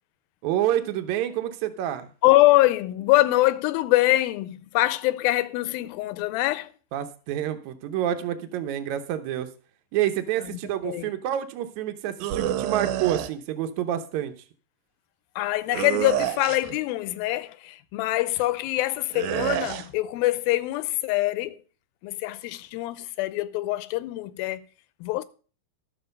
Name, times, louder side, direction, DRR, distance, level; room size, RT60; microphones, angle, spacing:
voice 1, 0.4-2.1 6.9-9.5 9.9-14.3, right 11 dB, 70° right, 2.0 m, -28 dB
voice 2, 2.2-6.7 10.8-11.1 15.4-21.6 22.0-24.7 25.0-25.2, left 17 dB, 85° left, 2.5 m, -24 dB
sound 1, 12.2-13.3 15.7-16.8 19.1-19.9, right 12 dB, 85° right, 2.6 m, -28 dB
12.5 x 6.8 x 5.2 m
omnidirectional pair, 4.1 m